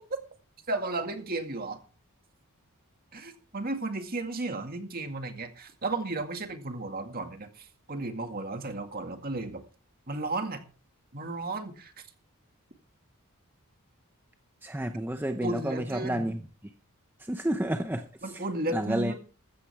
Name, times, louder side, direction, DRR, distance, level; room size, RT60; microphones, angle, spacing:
voice 1, 0.7-1.8 3.1-9.6 10.1-10.6 11.1-11.9 15.4-16.3 18.2-19.2, right 2 dB, 40° right, 2.1 m, -34 dB
voice 2, 14.6-16.4 17.2-18.4 18.7-19.1, right 1 dB, 10° right, 0.7 m, -30 dB
14.5 x 14.0 x 3.5 m
head